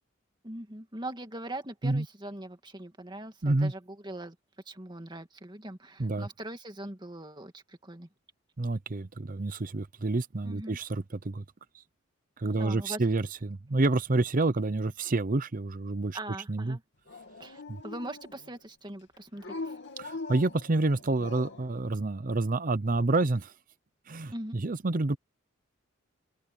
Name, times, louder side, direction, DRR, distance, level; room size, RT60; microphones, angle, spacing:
voice 1, 0.4-4.4 4.7-8.1 10.4-10.8 12.4-13.0 16.1-16.8 17.4-19.8 24.3-24.6, right 1 dB, 20° right, 2.1 m, -41 dB
voice 2, 3.4-3.7 6.0-6.3 8.6-11.4 12.4-16.2 16.5-16.8 17.7-17.8 20.0-23.5 24.1-25.2, right 2 dB, 40° right, 0.7 m, -28 dB
Dog, 17.1-18.6 19.4-21.7, left 3 dB, 60° left, 2.7 m, -42 dB
open air
head